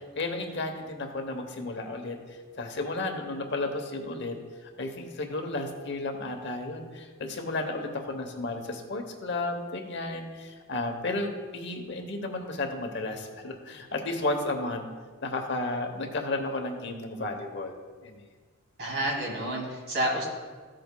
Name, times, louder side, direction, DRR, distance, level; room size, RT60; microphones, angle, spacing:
voice 1, 0.2-2.2 2.6-4.3 4.6-14.9 15.2-18.2, left 2 dB, 55° left, 4 dB, 0.9 m, -33 dB
voice 2, 18.8-20.2, right 1 dB, 55° right, -2 dB, 2.5 m, -29 dB
14.0 x 7.6 x 2.2 m, 1.5 s
head